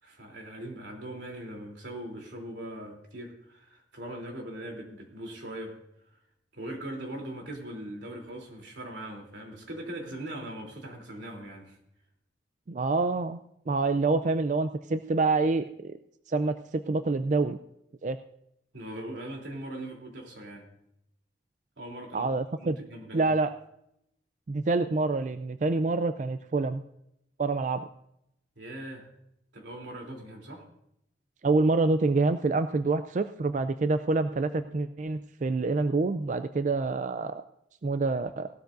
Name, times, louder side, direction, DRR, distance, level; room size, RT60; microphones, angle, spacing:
voice 1, 0.0-5.7 6.5-11.8 18.7-20.6 21.8-22.3 22.6-23.3 28.5-29.1 29.5-30.6, right 1 dB, 90° right, 0 dB, 3.2 m, -40 dB
voice 2, 12.7-13.4 13.7-16.0 16.3-17.6 18.0-18.2 22.1-22.8 23.1-23.5 24.5-26.8 27.4-27.9 31.4-37.4 37.8-38.5, right 3 dB, 45° right, 10 dB, 0.4 m, -27 dB
18.0 x 12.5 x 2.6 m, 0.79 s
head